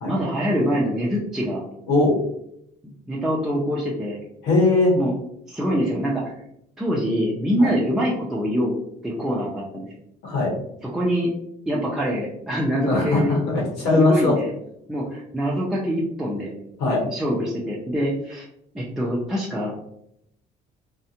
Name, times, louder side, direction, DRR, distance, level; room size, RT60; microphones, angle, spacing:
voice 1, 0.1-1.6 3.1-4.2 5.0-5.1 5.5-6.3 6.8-8.8 9.0-9.9 10.8-11.3 11.7-13.4 13.9-14.5 14.9-16.5 17.0-18.5 18.7-19.8, equal, 5° right, -5 dB, 0.5 m, -24 dB
voice 2, 1.9-2.2 4.4-4.9 7.6-7.7 10.2-10.5 12.8-14.3 16.8-17.0, left 2 dB, 85° left, -2 dB, 1.1 m, -20 dB
2.5 x 2.1 x 2.7 m, 0.74 s
cardioid pair, 110°, 17 cm